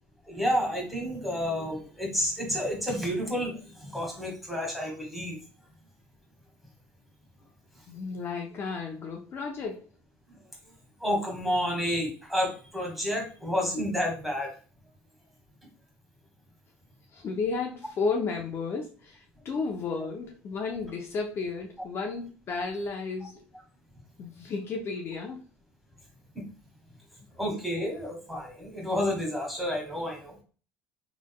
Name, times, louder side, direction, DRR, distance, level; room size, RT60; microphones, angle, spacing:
voice 1, 0.3-5.4 11.0-14.5 27.4-30.3, equal, ahead, 1.8 m, -30 dB
voice 2, 7.9-9.9 17.1-23.4 24.2-25.4, left 4 dB, 45° left, 0.6 m, -33 dB
3.9 x 3.1 x 2.2 m
supercardioid pair, 95°, 6 cm